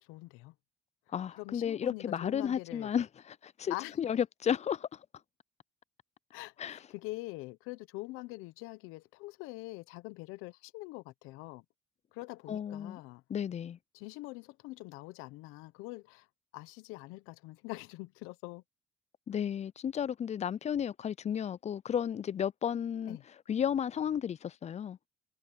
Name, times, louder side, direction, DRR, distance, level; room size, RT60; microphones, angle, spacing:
voice 1, 0.0-0.5 1.4-2.9 3.7-4.0 6.3-11.6 12.1-13.2 13.9-16.3 16.5-18.6 23.1-23.2, left 21 dB, 85° left, 1.0 m, -44 dB
voice 2, 1.1-3.1 3.4-5.0 6.6-6.8 12.5-13.0 13.3-13.8 19.3-23.2 23.5-25.0, left 8 dB, 35° left, 0.4 m, -33 dB
supercardioid pair, 65°, 21 cm